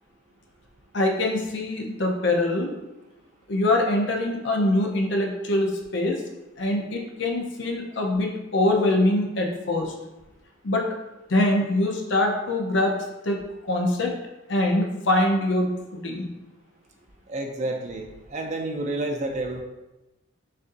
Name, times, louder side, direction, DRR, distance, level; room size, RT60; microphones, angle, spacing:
voice 1, 0.9-2.7 3.5-6.2 6.6-9.9 10.6-10.9 11.3-13.0 13.2-14.1 14.5-16.3, left 1 dB, 60° left, 1 dB, 0.7 m, -24 dB
voice 2, 17.3-19.6, right 2 dB, 35° right, 3 dB, 0.5 m, -30 dB
6.5 x 2.6 x 2.6 m, 1.0 s
head